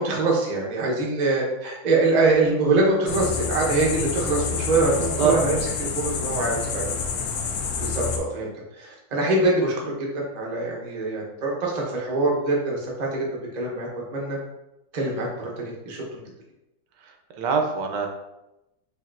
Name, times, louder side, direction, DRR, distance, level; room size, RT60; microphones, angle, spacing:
voice 1, 0.0-6.9 7.8-8.5 8.8-14.4 14.9-16.0, right 2 dB, 45° right, -3 dB, 0.5 m, -24 dB
sound 1, 3.1-8.2, left 5 dB, 70° left, 0.9 m, -28 dB
voice 2, 5.0-5.3 17.4-18.1, right 6 dB, 75° right, 3 dB, 1.2 m, -23 dB
5.2 x 2.6 x 2.5 m, 0.92 s
omnidirectional pair, 2.0 m